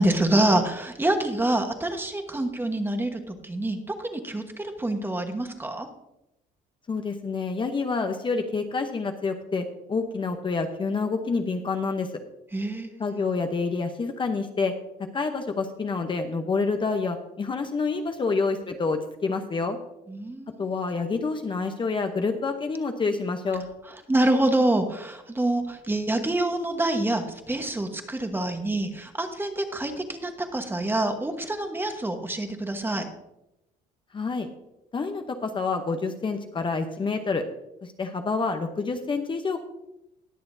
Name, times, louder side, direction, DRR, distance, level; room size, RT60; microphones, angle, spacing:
voice 1, 0.0-5.9 12.5-13.0 20.1-20.6 24.1-33.1, right 1 dB, 10° right, 6 dB, 1.2 m, -26 dB
voice 2, 6.9-12.1 13.0-14.7 15.1-19.8 20.6-23.6 34.1-34.5 34.9-37.4 37.8-39.6, left 4 dB, 30° left, 6 dB, 0.8 m, -28 dB
20.0 x 6.8 x 2.7 m, 0.88 s
cardioid pair, 110°, 17 cm